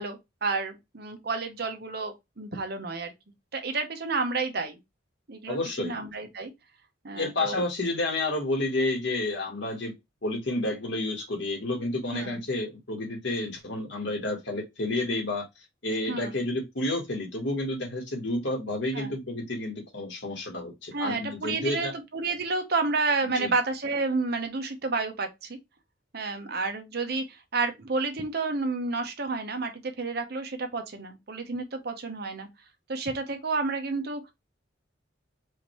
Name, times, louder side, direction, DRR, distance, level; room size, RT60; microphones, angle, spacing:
voice 1, 0.0-3.1 3.5-4.8 5.3-6.5 7.0-7.6 12.1-12.4 16.1-16.4 18.9-19.1 20.9-25.6 26.1-32.5 32.9-34.3, right 3 dB, 55° right, 0.9 m, -30 dB
voice 2, 5.5-5.9 7.1-9.9 10.2-15.5 15.8-21.9 23.3-23.5, left 2 dB, 65° left, 1.7 m, -30 dB
5.0 x 2.7 x 3.1 m
head